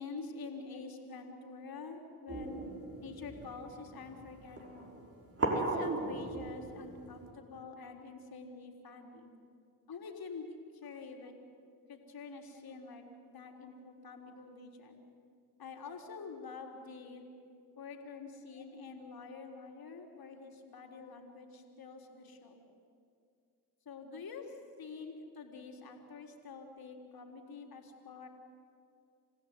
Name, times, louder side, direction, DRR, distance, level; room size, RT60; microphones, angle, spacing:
voice 1, 0.0-2.6 3.0-5.0 5.5-9.3 9.9-10.4 10.7-11.4 11.9-15.0 15.6-17.2 17.8-22.6 23.9-28.3, left 4 dB, 50° left, 3 dB, 4.0 m, -47 dB
sound 1, 2.3-7.3, right 2 dB, 30° right, 5.4 m, -38 dB
28.5 x 16.0 x 9.7 m, 2.4 s
hypercardioid pair, 55°, 46 cm